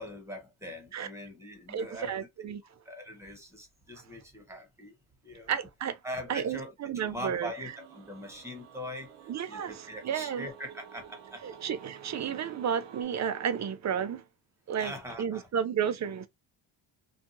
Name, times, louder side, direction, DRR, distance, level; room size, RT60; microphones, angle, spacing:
voice 1, 0.0-2.1 2.8-4.9 5.2-5.5 6.0-9.1 9.5-11.4 14.8-15.5, equal, 5° right, 1.2 m, -42 dB
voice 2, 1.7-2.6 4.0-4.1 5.5-6.0 6.3-7.7 9.3-10.5 11.4-14.2 14.7-16.3, right 8 dB, 35° right, 0.5 m, -32 dB
sound 1, 7.5-13.0, right 8 dB, 65° right, 0.8 m, -51 dB
2.6 x 2.4 x 2.6 m
cardioid pair, 85°, 48 cm